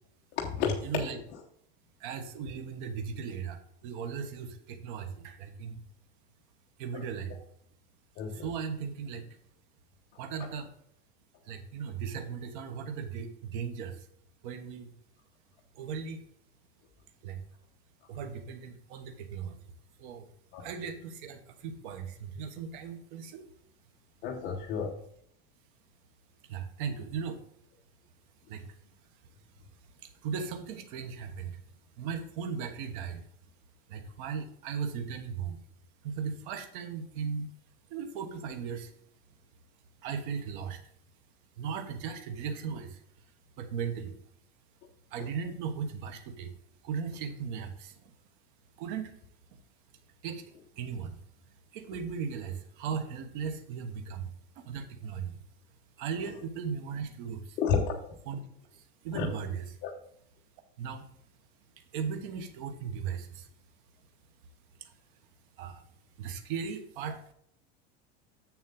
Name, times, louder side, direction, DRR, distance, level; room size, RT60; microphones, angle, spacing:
voice 1, 0.3-1.4 6.9-7.0 8.2-8.5 10.4-10.5 20.5-20.7 24.2-25.0 56.2-56.3 57.6-58.0 59.1-59.3 59.8-59.9, left 6 dB, 35° left, 0 dB, 1.0 m, -32 dB
voice 2, 0.8-1.2 2.0-5.8 6.8-7.4 8.3-9.2 10.2-10.7 11.5-14.0 14.4-14.9 15.7-16.2 17.2-17.4 18.1-19.6 20.0-20.3 20.6-23.5 26.5-27.4 28.5-28.7 30.0-31.6 32.0-33.2 33.9-35.6 36.0-37.5 37.9-38.9 40.0-40.8 41.6-43.0 43.6-44.2 45.1-46.5 46.8-47.9 48.8-49.1 50.2-50.4 50.8-51.2 51.7-55.4 56.0-57.6 58.3-58.4 58.7-59.7 60.8-61.1 61.9-63.5 64.8-64.9 65.6-65.8 66.2-67.3, right 6 dB, 55° right, 6 dB, 1.3 m, -37 dB
7.5 x 7.2 x 3.8 m, 0.69 s
supercardioid pair, 165°, 31 cm